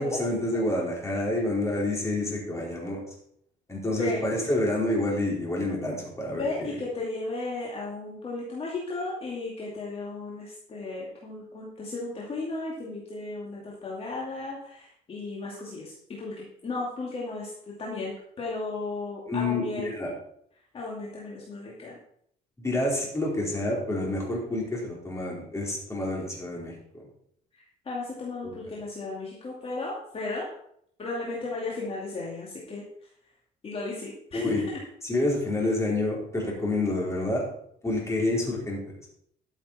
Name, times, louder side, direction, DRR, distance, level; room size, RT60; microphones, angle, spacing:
voice 1, 0.0-3.0 3.7-6.7 19.3-20.1 22.6-26.7 28.4-28.6 34.3-34.6 35.0-37.4 37.8-38.8, left 2 dB, 15° left, -3 dB, 4.4 m, -28 dB
voice 2, 3.9-4.2 6.3-19.9 20.7-22.0 27.5-30.5 31.0-32.8 33.6-34.8, left 3 dB, 35° left, -4 dB, 2.5 m, -35 dB
13.0 x 7.2 x 4.3 m, 0.70 s
cardioid pair, 110°, 17 cm